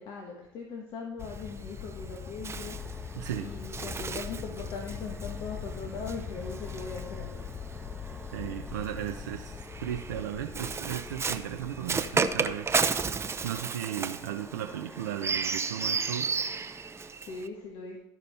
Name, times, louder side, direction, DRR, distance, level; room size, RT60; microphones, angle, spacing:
voice 1, 0.0-3.1 3.4-7.5 17.1-18.0, left 4 dB, 60° left, 0 dB, 1.5 m, -40 dB
sound 1, 1.2-13.6, left 7 dB, 30° left, 0.5 m, -42 dB
Bird, 1.2-7.7 8.7-17.5, right 5 dB, 30° right, 0.7 m, -34 dB
sound 2, 2.5-17.1, right 1 dB, 5° right, 1.2 m, -50 dB
voice 2, 3.1-3.5 8.3-12.7 13.4-16.3, right 11 dB, 90° right, 3 dB, 0.6 m, -36 dB
13.5 x 5.2 x 4.2 m, 0.85 s
hypercardioid pair, 70°, 9 cm